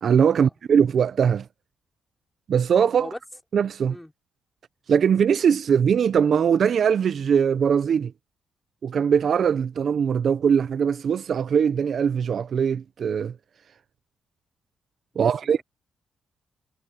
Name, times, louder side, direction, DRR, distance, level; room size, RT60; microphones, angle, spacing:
voice 1, 0.0-1.5 2.5-3.1 3.5-3.9 4.9-8.1 8.8-13.3 15.2-15.6, right 7 dB, 55° right, 0.6 m, -21 dB
voice 2, 15.1-15.6, left 1 dB, 5° left, 3.8 m, -39 dB
cardioid pair, 95°, 0 cm